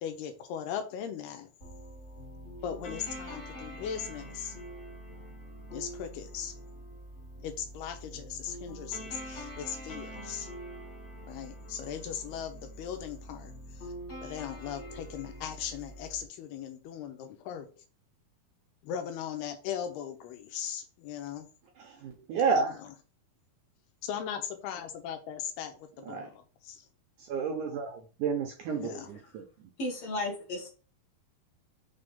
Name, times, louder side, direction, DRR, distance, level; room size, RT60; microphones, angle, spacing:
voice 1, 0.0-1.5 2.6-4.6 5.7-6.6 7.4-10.5 11.3-13.9 14.2-17.7 18.8-21.5 22.8-22.9 24.0-26.9 28.8-29.1, left 9 dB, 85° left, 5 dB, 3.0 m, -38 dB
sound 1, 1.6-16.2, equal, 35° left, 1.1 m, -45 dB
voice 2, 21.8-22.8 26.1-26.3 27.2-29.7, right 5 dB, 75° right, 3 dB, 1.9 m, -31 dB
voice 3, 29.8-30.7, left 1 dB, 55° left, 0 dB, 1.8 m, -34 dB
6.3 x 3.6 x 5.4 m, 0.36 s
omnidirectional pair, 4.5 m